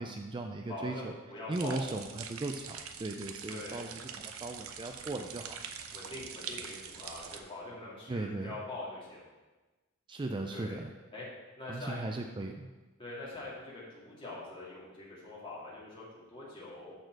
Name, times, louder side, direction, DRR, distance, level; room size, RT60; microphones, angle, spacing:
voice 1, 0.0-1.1 1.5-5.6 8.1-8.6 10.1-10.9 11.7-12.7, right 2 dB, 20° right, 4 dB, 0.4 m, -37 dB
voice 2, 0.7-1.9 3.5-3.9 5.9-9.3 10.5-10.8 11.1-11.3 11.6-12.3 13.0-16.9, left 2 dB, 25° left, -7 dB, 2.7 m, -43 dB
sound 1, 1.5-7.4, right 7 dB, 80° right, 0.7 m, -44 dB
13.0 x 4.4 x 4.7 m, 1.2 s
head